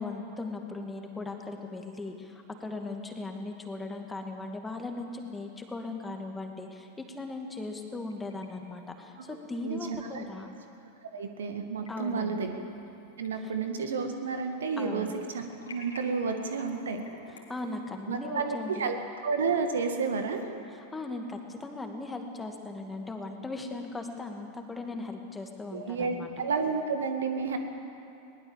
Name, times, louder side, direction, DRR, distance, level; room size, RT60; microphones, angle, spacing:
voice 1, 0.0-10.5 11.9-12.5 13.4-13.5 14.8-15.1 17.3-18.9 20.7-26.3, left 3 dB, 10° left, 3 dB, 2.3 m, -38 dB
sound 1, 7.7-8.5 8.8-8.9 10.4-10.5 11.5-11.9 12.4-12.9 13.2-14.6 14.9-18.8, left 2 dB, 75° left, 3.2 m, -50 dB
voice 2, 9.6-10.2 11.1-12.6 13.2-17.0 18.1-19.0 19.2-20.4 25.7-27.6, right 5 dB, 65° right, 6 dB, 2.0 m, -31 dB
22.0 x 19.5 x 7.5 m, 2.7 s
figure-of-eight pair, 90°, 0 cm